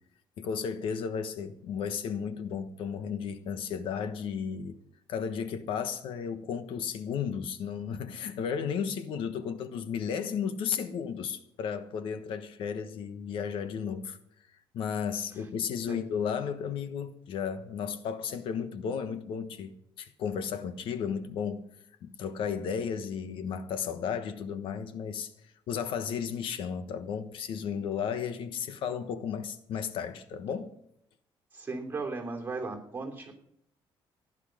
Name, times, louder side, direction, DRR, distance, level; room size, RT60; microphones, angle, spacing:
voice 1, 0.4-4.8 5.1-14.2 14.7-19.7 20.0-21.7 22.0-25.3 25.7-30.7, left 7 dB, 70° left, 1.2 m, -34 dB
voice 2, 31.5-33.3, right 3 dB, 20° right, 3.1 m, -36 dB
15.5 x 11.0 x 6.5 m
cardioid pair, 165°, 9 cm